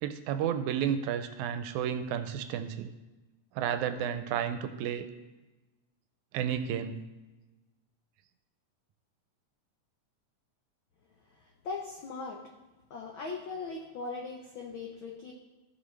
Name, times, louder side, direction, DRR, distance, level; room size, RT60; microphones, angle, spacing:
voice 1, 0.0-2.9 3.6-5.1 6.3-7.0, right 9 dB, 85° right, 9 dB, 1.9 m, -32 dB
voice 2, 11.6-12.4 12.9-15.3, left 4 dB, 90° left, 0 dB, 1.1 m, -39 dB
15.0 x 5.8 x 3.3 m, 1.1 s
omnidirectional pair, 3.5 m